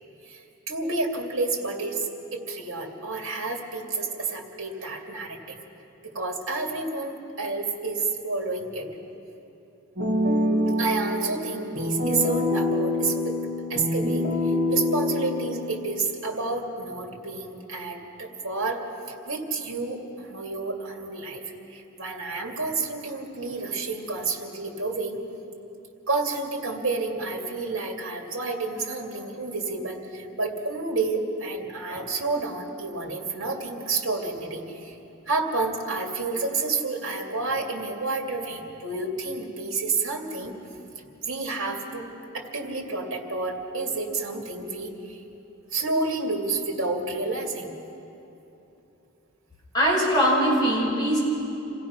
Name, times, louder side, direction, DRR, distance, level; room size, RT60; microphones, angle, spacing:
voice 1, 0.3-2.1 2.5-5.6 6.1-8.9 10.8-13.3 13.7-18.8 19.3-21.4 21.7-25.2 26.1-35.0 35.3-40.5 41.3-42.1 42.3-45.2 45.7-47.7, right 3 dB, 65° right, 1 dB, 2.6 m, -30 dB
sound 1, 10.0-16.0, left 1 dB, 40° right, 2.0 m, -26 dB
voice 2, 49.7-51.2, equal, 20° left, -6 dB, 6.4 m, -21 dB
27.5 x 16.5 x 5.9 m, 2.9 s
head